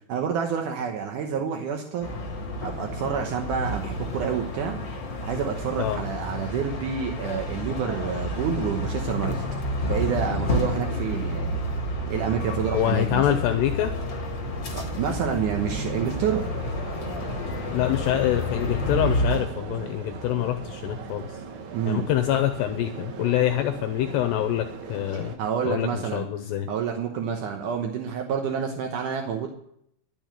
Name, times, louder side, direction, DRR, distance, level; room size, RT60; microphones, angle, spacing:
voice 1, 0.1-2.1 2.6-4.8 5.2-9.4 9.9-11.5 12.1-13.4 14.7-16.5 21.7-22.0 25.4-26.3 26.7-29.5, right 7 dB, 80° right, 3 dB, 1.8 m, -28 dB
sound 1, 2.0-19.4, left 1 dB, 45° left, 2.4 m, -30 dB
voice 2, 12.7-13.9 17.7-21.3 21.9-25.3 25.7-26.7, left 12 dB, 80° left, 6 dB, 2.7 m, -25 dB
sound 2, 15.6-25.4, right 5 dB, 60° right, 2.0 m, -39 dB
12.5 x 7.2 x 9.0 m, 0.73 s
omnidirectional pair, 5.3 m